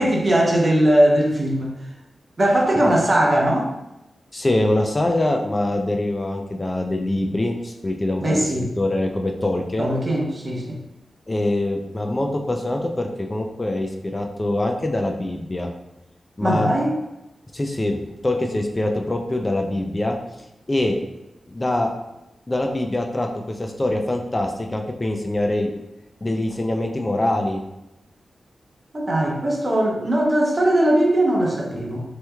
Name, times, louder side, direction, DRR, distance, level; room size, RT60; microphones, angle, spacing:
voice 1, 0.0-1.7 2.4-3.7 8.2-8.7 9.8-10.8 16.4-16.9 28.9-32.0, right 1 dB, 25° right, -1 dB, 0.6 m, -19 dB
voice 2, 4.3-9.9 11.3-15.7 16.4-16.7 17.5-20.2 20.7-21.0 21.5-21.9 22.5-25.7 26.2-27.6, left 1 dB, 20° left, 3 dB, 0.3 m, -24 dB
3.4 x 3.0 x 2.2 m, 0.91 s
wide cardioid pair, 160°, 0 cm